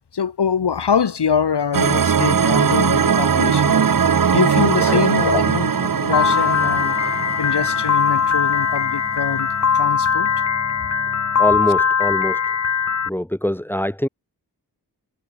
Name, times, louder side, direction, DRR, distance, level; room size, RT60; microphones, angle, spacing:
voice 1, 0.1-3.8 4.3-6.9 7.4-9.5 9.7-10.3, left 7 dB, 85° left, 6.0 m, -23 dB
sound 1, 1.7-8.8, right 7 dB, 55° right, 1.3 m, -20 dB
sound 2, 2.6-11.9, left 3 dB, 25° left, 4.6 m, -39 dB
Piano, 6.1-13.1, left 6 dB, 45° left, 0.9 m, -20 dB
voice 2, 11.4-12.5 13.1-14.1, left 1 dB, 5° left, 2.8 m, -23 dB
wide cardioid pair, 95°, 39 cm